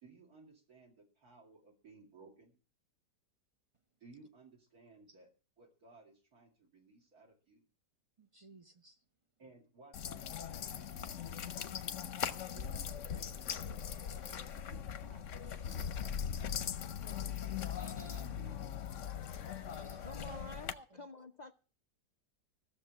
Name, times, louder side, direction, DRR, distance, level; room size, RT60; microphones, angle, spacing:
voice 1, 0.0-2.5 4.0-5.3 5.6-7.6 9.4-11.3 12.5-13.7 14.7-17.2 18.1-18.8, right 3 dB, 60° right, 2.9 m, -60 dB
voice 2, 8.2-9.0 17.8-18.3 19.7-20.4 20.7-21.1, right 2 dB, 35° right, 0.5 m, -56 dB
sound 1, 9.9-20.7, left 8 dB, 55° left, 1.0 m, -40 dB
voice 3, 20.0-21.5, left 2 dB, 75° left, 0.4 m, -49 dB
15.0 x 6.9 x 7.5 m
omnidirectional pair, 1.8 m